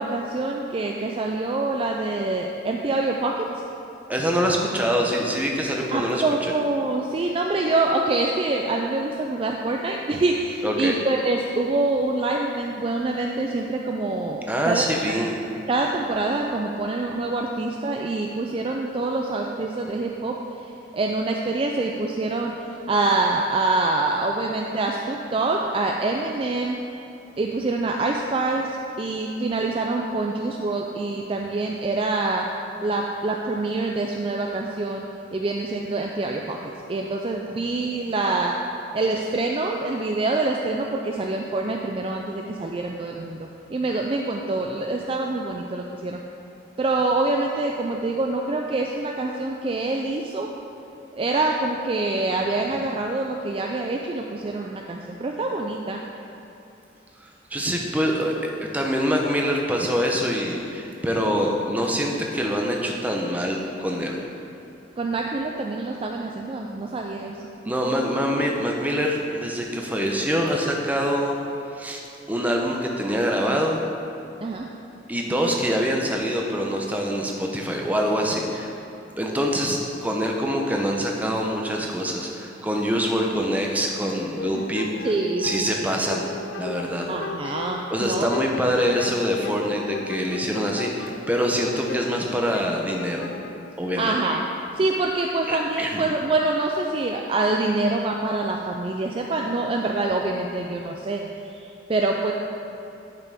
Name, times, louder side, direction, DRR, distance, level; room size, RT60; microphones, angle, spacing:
voice 1, 0.0-3.5 5.9-15.3 15.7-20.3 20.9-26.8 27.4-32.5 32.8-35.0 35.3-38.5 38.9-46.2 46.8-50.5 51.1-56.0 65.0-67.4 67.8-67.9 74.4-74.7 85.0-85.9 87.1-88.3 94.0-94.4 94.7-101.2 101.5-102.3, right 2 dB, 30° right, 0 dB, 0.3 m, -25 dB
voice 2, 4.1-6.2 10.6-10.9 14.5-15.4 57.5-64.2 67.6-72.0 72.3-73.8 75.1-78.7 79.2-84.9 85.4-86.3 86.6-87.1 87.9-93.3 93.8-94.1 95.5-96.1, equal, 10° right, 0 dB, 0.7 m, -25 dB
sound 1, 84.4-94.8, left 4 dB, 70° left, 0.4 m, -36 dB
10.5 x 5.8 x 3.5 m, 2.8 s
head